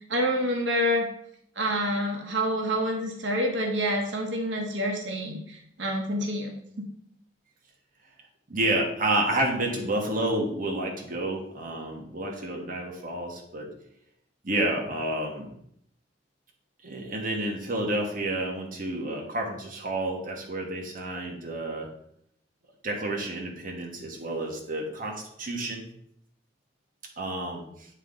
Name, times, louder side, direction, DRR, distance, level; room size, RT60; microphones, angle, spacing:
voice 1, 0.1-1.1 1.6-6.9, equal, 90° right, 1 dB, 1.1 m, -27 dB
voice 2, 8.5-13.7 14.4-15.5 16.8-21.9 22.8-25.8 27.2-27.9, right 1 dB, 50° right, 0 dB, 1.2 m, -30 dB
8.9 x 3.8 x 3.8 m, 0.72 s
head